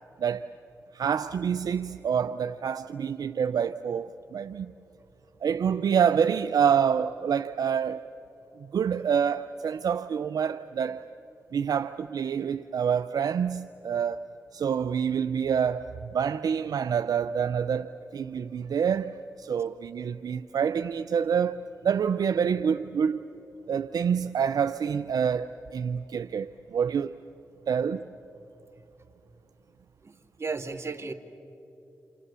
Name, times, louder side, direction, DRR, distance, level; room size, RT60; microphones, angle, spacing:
voice 1, 0.9-4.7 5.4-8.0 8.6-11.0 11.5-14.2 14.5-23.3 23.7-27.1 27.7-28.1, right 7 dB, 70° right, 0.5 m, -27 dB
voice 2, 30.4-31.1, right 4 dB, 40° right, 2.0 m, -34 dB
28.5 x 27.0 x 6.9 m
cardioid pair, 45°, 7 cm